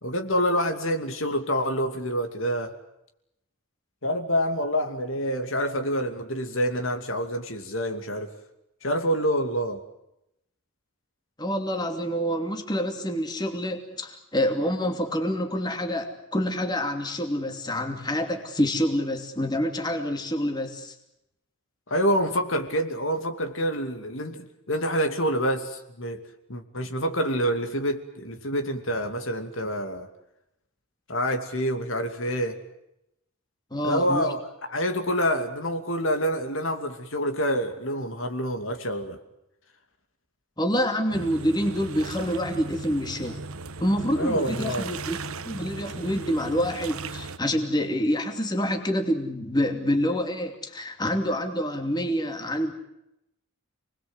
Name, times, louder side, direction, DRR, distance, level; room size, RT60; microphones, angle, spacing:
voice 1, 0.0-2.7 4.0-8.3 8.8-9.8 21.9-26.2 26.5-30.1 31.1-32.6 33.8-39.2 44.2-44.9, equal, 60° left, 5 dB, 2.7 m, -27 dB
voice 2, 11.4-20.9 33.7-34.2 40.6-43.4 43.8-45.2 45.4-52.7, equal, 20° left, 4 dB, 2.8 m, -27 dB
sound 1, 41.1-47.4, right 3 dB, 75° right, 1.2 m, -37 dB
29.5 x 21.0 x 8.1 m, 0.84 s
head